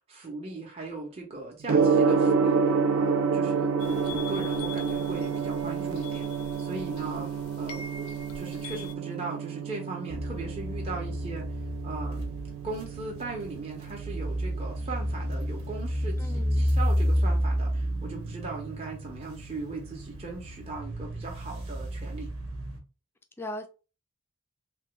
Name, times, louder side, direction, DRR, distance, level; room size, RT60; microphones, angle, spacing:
voice 1, 0.1-2.6 2.9-6.3 6.6-8.1 8.3-11.5 11.8-12.3 12.6-22.3, right 3 dB, 30° right, 0.7 m, -38 dB
Gong, 1.7-20.7, right 5 dB, 65° right, 0.4 m, -30 dB
sound 1, 3.8-8.9, left 5 dB, 85° left, 0.5 m, -44 dB
sound 2, 10.1-22.8, equal, 85° right, 1.1 m, -31 dB
voice 2, 16.2-16.7 23.4-23.7, left 1 dB, 10° left, 0.3 m, -38 dB
3.2 x 2.2 x 3.1 m
head